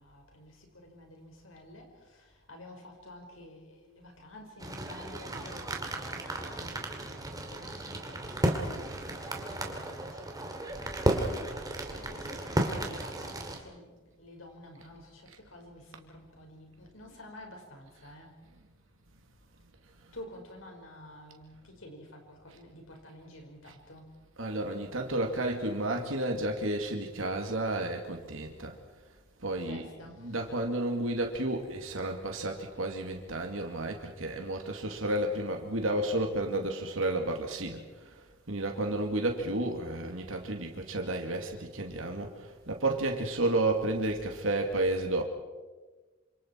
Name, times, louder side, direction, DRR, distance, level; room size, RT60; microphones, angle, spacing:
voice 1, 0.0-6.9 7.5-11.2 11.9-18.4 20.1-24.1 29.5-30.6 33.2-33.3, left 1 dB, 90° left, 3 dB, 5.4 m, -50 dB
sound 1, 4.6-13.6, right 1 dB, 20° right, 2.8 m, -34 dB
voice 2, 24.4-28.8 29.4-37.8 38.5-45.2, right 2 dB, 85° right, 3 dB, 2.4 m, -31 dB
27.5 x 26.5 x 4.6 m, 1.2 s
head